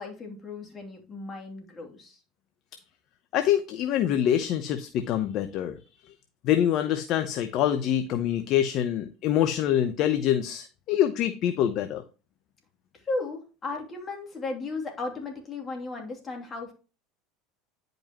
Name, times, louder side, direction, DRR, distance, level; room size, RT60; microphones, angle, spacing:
voice 1, 0.0-2.2 12.9-16.7, left 3 dB, 30° left, 2.8 m, -35 dB
voice 2, 3.3-5.8 6.4-12.0, left 10 dB, 55° left, 0.8 m, -25 dB
10.5 x 5.3 x 3.0 m
hypercardioid pair, 95°, 0 cm